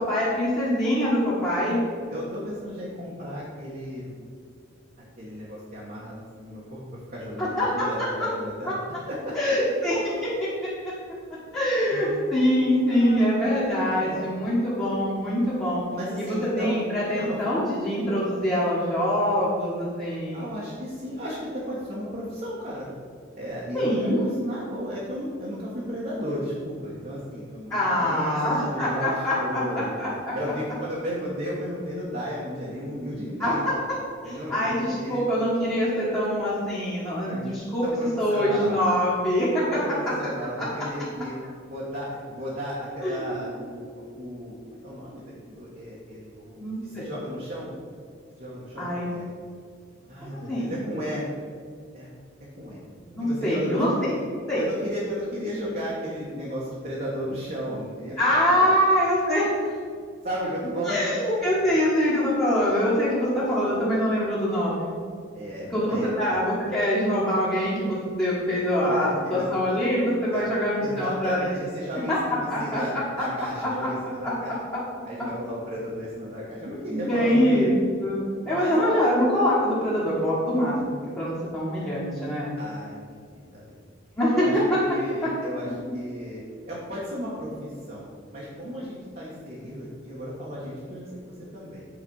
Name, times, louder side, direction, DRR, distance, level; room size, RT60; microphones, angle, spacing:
voice 1, 0.0-1.8 7.4-7.8 9.3-10.5 11.5-15.8 16.2-20.5 23.7-24.2 27.7-30.3 33.4-33.7 34.2-37.8 38.2-39.6 43.0-43.4 46.6-47.1 48.8-49.1 50.2-50.7 53.0-54.1 54.5-54.6 58.2-59.5 60.8-64.9 65.7-71.5 72.5-72.8 73.6-73.7 76.9-77.7 78.0-82.5 84.2-84.4 85.2-85.3, equal, 15° left, -11 dB, 1.6 m, -24 dB
voice 2, 2.1-4.1 5.2-8.7 9.1-9.6 11.9-12.3 12.9-14.3 15.9-16.8 17.2-17.4 20.3-22.9 23.3-33.6 34.2-35.3 37.3-37.5 37.8-38.8 39.7-41.3 41.6-43.8 44.2-47.7 48.4-49.3 50.0-51.2 51.9-52.1 52.6-52.8 53.2-53.8 54.5-58.8 60.2-61.1 65.3-66.3 68.8-69.5 70.3-70.5 70.8-74.6 75.1-77.7 78.4-79.0 82.6-83.8 84.3-88.0 88.3-91.1 91.5-91.8, equal, 45° right, -7 dB, 1.4 m, -34 dB
8.1 x 4.3 x 5.5 m, 2.1 s
head